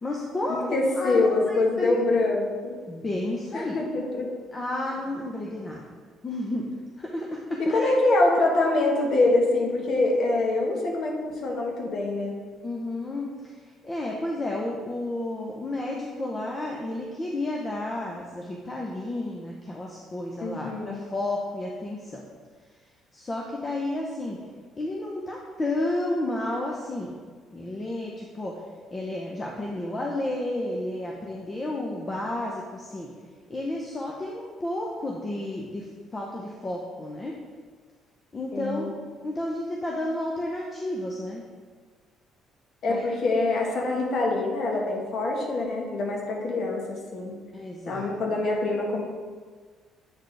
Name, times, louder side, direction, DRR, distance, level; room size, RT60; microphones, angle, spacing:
voice 1, 0.0-2.0 2.9-3.8 4.5-5.8 6.2-6.7 7.0-7.9 12.6-22.2 23.1-24.4 24.8-27.1 27.5-28.6 28.9-33.1 33.5-35.9 36.1-37.4 38.3-39.0 39.2-41.4 42.9-43.0 47.5-48.1, left 1 dB, 25° left, -1 dB, 0.7 m, -31 dB
voice 2, 0.7-2.7 3.5-4.3 7.6-12.3 20.4-21.0 38.5-38.9 42.8-47.3 47.9-49.0, left 2 dB, 60° left, 0 dB, 1.3 m, -25 dB
8.0 x 3.9 x 3.3 m, 1.5 s
cardioid pair, 95°, 0 cm